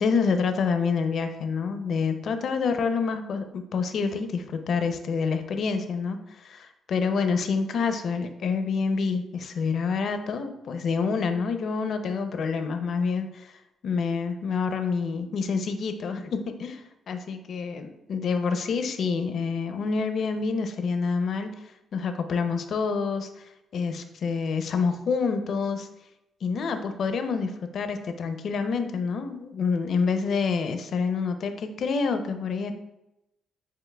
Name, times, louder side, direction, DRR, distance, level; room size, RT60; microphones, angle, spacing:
voice 1, 0.0-13.5 13.8-21.5 21.9-25.9 26.4-32.7, left 5 dB, 60° left, 8 dB, 0.4 m, -27 dB
6.9 x 2.8 x 2.2 m, 0.90 s
cardioid pair, 90°, 0 cm